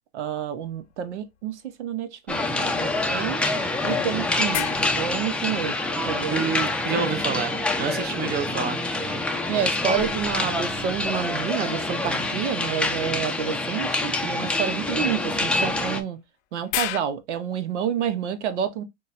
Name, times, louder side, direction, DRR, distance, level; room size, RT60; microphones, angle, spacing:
voice 1, 0.1-3.4 3.8-4.7 5.0-5.8 6.1-6.4 9.5-16.2 16.5-18.8, right 8 dB, 80° right, 0.8 m, -29 dB
sound 1, 0.6-1.9 2.3-2.4 3.4-6.9 8.6-11.7 13.4-13.6 15.7-17.0, left 13 dB, 75° left, 0.6 m, -37 dB
sound 2, 2.3-16.0, left 2 dB, 5° left, 0.5 m, -26 dB
voice 2, 6.3-8.8, right 6 dB, 30° right, 0.7 m, -28 dB
6.3 x 2.2 x 2.4 m
hypercardioid pair, 110°, 34 cm